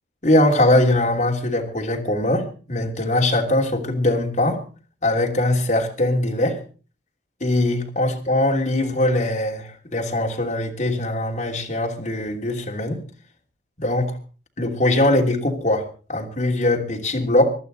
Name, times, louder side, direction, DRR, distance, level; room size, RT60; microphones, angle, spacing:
voice 1, 0.2-4.6 5.0-6.6 7.4-13.0 13.8-14.2 14.6-17.5, left 1 dB, 40° left, 0 dB, 2.9 m, -21 dB
24.5 x 12.0 x 4.0 m, 0.37 s
head